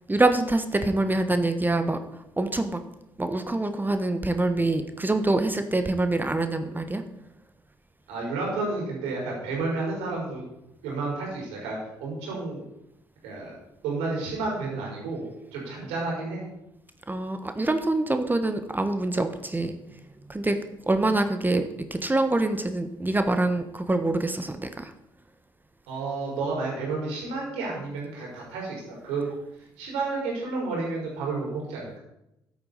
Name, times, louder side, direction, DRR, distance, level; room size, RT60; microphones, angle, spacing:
voice 1, 0.1-2.0 2.4-2.8 3.2-7.0 17.1-19.8 20.3-20.6 20.9-21.6 21.9-24.9, right 2 dB, 15° right, 8 dB, 1.2 m, -25 dB
voice 2, 8.1-10.4 10.8-12.6 13.2-13.6 13.8-15.2 15.5-16.4 25.9-29.2 29.8-32.0, right 3 dB, 70° right, -3 dB, 5.0 m, -31 dB
14.0 x 8.3 x 4.1 m, 0.86 s
figure-of-eight pair, 45°, 11 cm